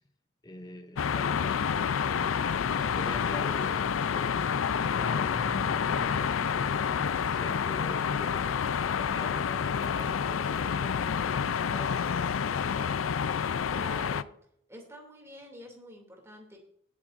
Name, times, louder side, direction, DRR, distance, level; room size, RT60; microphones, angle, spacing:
voice 1, 0.4-1.7 2.0-8.7 9.0-12.1, left 1 dB, 20° left, 0.6 m, -43 dB
sound 1, 1.0-14.2, left 7 dB, 90° left, 0.4 m, -29 dB
voice 2, 13.7-14.3 14.7-16.6, equal, 15° right, 2.6 m, -46 dB
19.0 x 8.3 x 2.6 m
head